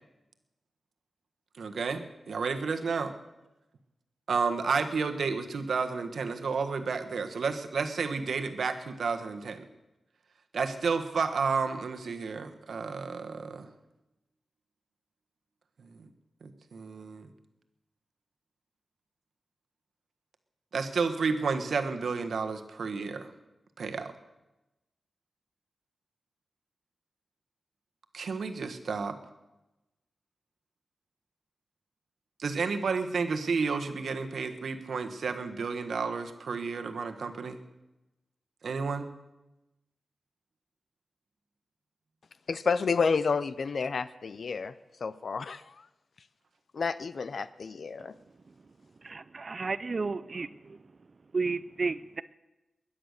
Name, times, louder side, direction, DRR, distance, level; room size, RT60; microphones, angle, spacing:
voice 1, 1.6-3.1 4.3-9.6 10.5-13.7 15.9-16.1 16.4-17.3 20.7-23.3 23.8-24.1 28.1-29.2 32.4-37.6 38.6-39.1, right 5 dB, 75° right, 7 dB, 1.4 m, -31 dB
voice 2, 42.5-44.7 45.0-45.9 46.7-48.1, left 5 dB, 60° left, 14 dB, 0.5 m, -30 dB
voice 3, 49.0-50.5 51.3-52.2, right 4 dB, 40° right, 15 dB, 0.4 m, -32 dB
21.5 x 9.9 x 6.6 m, 1.0 s
wide cardioid pair, 145°, 0 cm